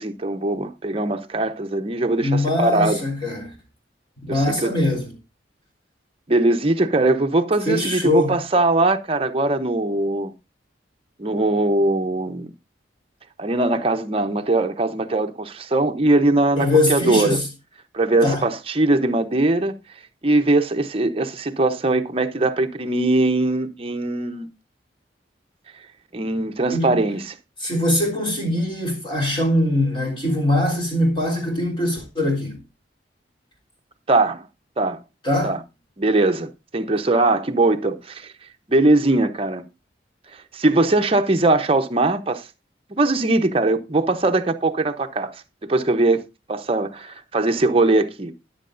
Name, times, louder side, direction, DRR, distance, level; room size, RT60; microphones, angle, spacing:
voice 1, 0.0-3.0 4.3-4.7 6.3-10.3 11.2-12.5 13.4-17.4 17.9-19.7 20.2-24.5 26.1-27.3 34.1-34.4 34.8-35.0 35.4-35.6 36.0-38.3 38.7-39.6 40.5-42.4 42.9-45.3 45.6-46.2 46.5-48.3, right 2 dB, 30° right, 0.8 m, -21 dB
voice 2, 2.2-3.5 4.2-5.1 7.6-8.4 16.6-17.5 18.2-18.5 26.7-27.0 27.6-32.6 35.2-35.5, left 1 dB, 25° left, 3.4 m, -22 dB
13.5 x 10.0 x 2.6 m
head